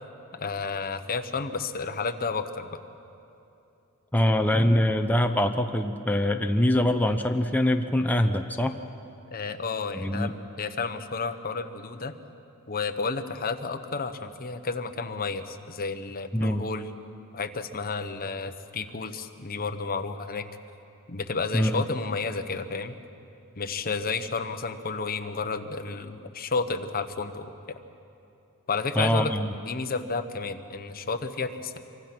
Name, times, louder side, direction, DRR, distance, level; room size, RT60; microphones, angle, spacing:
voice 1, 0.3-2.8 9.3-12.1 12.7-16.9 17.3-20.5 21.1-23.0 23.6-27.8 28.7-31.8, left 4 dB, 40° left, 7 dB, 1.1 m, -31 dB
voice 2, 4.1-8.8 9.9-10.3 16.3-16.7 21.5-21.8 29.0-29.5, left 1 dB, 10° left, 5 dB, 0.7 m, -24 dB
25.5 x 24.5 x 6.1 m, 2.8 s
head